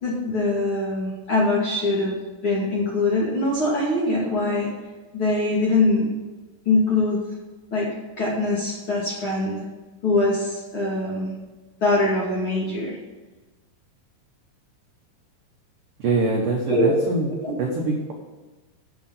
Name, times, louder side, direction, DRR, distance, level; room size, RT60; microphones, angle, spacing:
voice 1, 0.0-4.7 5.1-6.1 6.7-7.2 7.7-7.9 8.2-9.6 10.0-11.3 11.8-13.0 16.7-17.0 17.4-17.5, left 2 dB, 45° left, -5 dB, 1.8 m, -23 dB
voice 2, 16.0-17.3 17.6-18.1, right 3 dB, 85° right, -1 dB, 1.8 m, -23 dB
10.5 x 7.0 x 7.1 m, 1.2 s
omnidirectional pair, 5.9 m